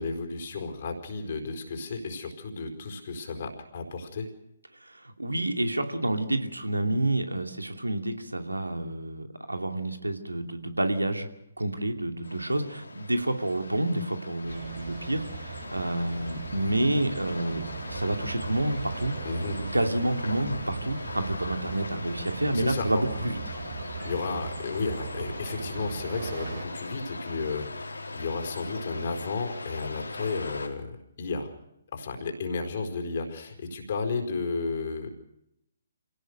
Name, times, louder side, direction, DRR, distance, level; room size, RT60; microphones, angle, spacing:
voice 1, 0.0-4.3 19.2-19.6 22.5-23.0 24.0-31.5 31.9-35.1, left 4 dB, 45° left, 4 dB, 4.7 m, -33 dB
voice 2, 4.9-11.3 11.6-19.1 19.6-23.4, right 1 dB, 85° right, 5 dB, 2.7 m, -29 dB
sound 1, 12.2-30.7, left 3 dB, 75° left, 4.4 m, -40 dB
sound 2, 14.5-26.6, right 5 dB, 55° right, 4.6 m, -38 dB
27.5 x 17.5 x 6.6 m, 0.82 s
figure-of-eight pair, 135°, 0 cm